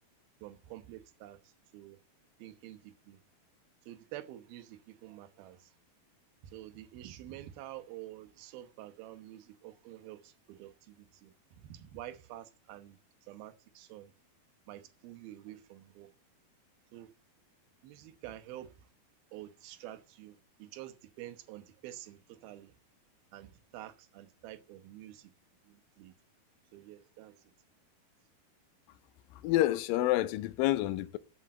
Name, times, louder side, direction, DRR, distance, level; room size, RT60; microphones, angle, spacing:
voice 1, 0.4-2.0 2.4-3.2 3.9-5.7 6.4-14.1 14.7-16.1 16.9-17.1 17.8-18.9 19.3-22.7 23.3-25.3 25.6-26.1 26.7-27.5, right 13 dB, 80° right, 2.9 m, -48 dB
voice 2, 29.4-31.2, left 15 dB, 75° left, 2.4 m, -28 dB
13.5 x 5.3 x 8.7 m
omnidirectional pair, 4.3 m